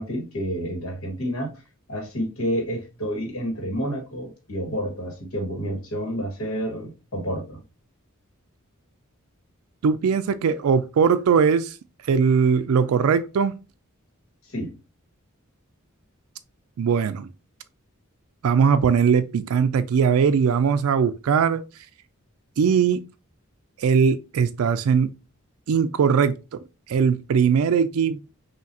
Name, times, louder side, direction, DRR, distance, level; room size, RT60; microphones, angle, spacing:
voice 1, 0.0-1.5 1.9-7.6 14.5-14.7, equal, 75° left, 1.7 m, -29 dB
voice 2, 9.8-11.8 12.1-13.5 16.8-17.3 18.4-21.6 22.6-23.0 23.8-25.1 25.7-26.6 26.9-28.2, right 6 dB, 80° right, 0.4 m, -20 dB
5.7 x 2.8 x 2.7 m
head